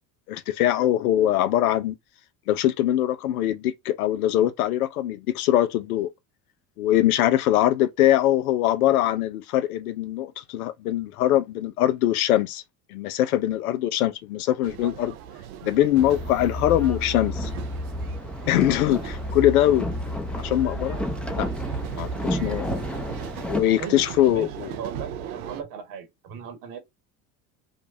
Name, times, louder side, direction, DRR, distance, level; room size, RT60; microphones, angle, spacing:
voice 1, 0.3-1.9 2.5-6.1 6.8-12.6 12.9-15.1 15.6-17.5 18.5-19.9 20.3-21.0 21.3-21.5 21.9-22.8 23.5-24.7, left 13 dB, 90° left, 0.7 m, -22 dB
sound 1, 14.6-25.6, right 9 dB, 90° right, 0.7 m, -39 dB
Boat Water vehicle, 15.9-23.6, equal, 5° left, 0.6 m, -31 dB
voice 2, 23.8-26.8, right 7 dB, 70° right, 1.6 m, -37 dB
5.1 x 2.3 x 2.6 m
hypercardioid pair, 90°, 42 cm